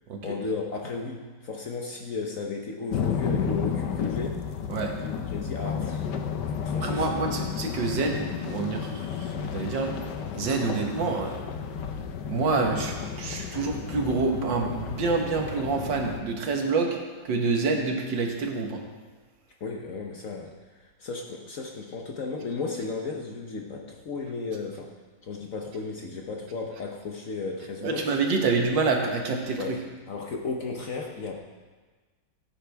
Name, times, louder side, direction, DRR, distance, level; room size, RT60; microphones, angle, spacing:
voice 1, 0.2-4.5 5.0-6.1 6.6-7.1 19.6-20.5 20.8-25.0 25.2-28.2 29.6-29.8 30.1-31.4, left 4 dB, 55° left, 1 dB, 1.1 m, -34 dB
sound 1, 2.9-16.2, left 7 dB, 75° left, 1.3 m, -32 dB
voice 2, 6.8-9.9 10.3-11.4 12.3-17.0 17.2-18.8 27.8-29.8, right 4 dB, 85° right, 2 dB, 2.0 m, -27 dB
16.5 x 8.5 x 3.5 m, 1.4 s
omnidirectional pair, 2.0 m